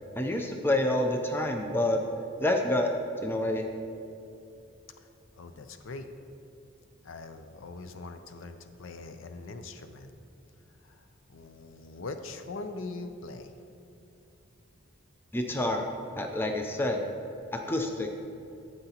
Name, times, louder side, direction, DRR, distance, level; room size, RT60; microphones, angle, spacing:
voice 1, 0.2-2.0 2.4-2.9 3.2-3.7 15.3-15.9 16.1-17.0 17.5-18.1, left 1 dB, 10° left, 3 dB, 0.4 m, -28 dB
voice 2, 5.4-6.1 7.0-10.1 10.8-13.5, left 3 dB, 70° left, 8 dB, 0.5 m, -42 dB
11.5 x 7.9 x 2.9 m, 2.7 s
head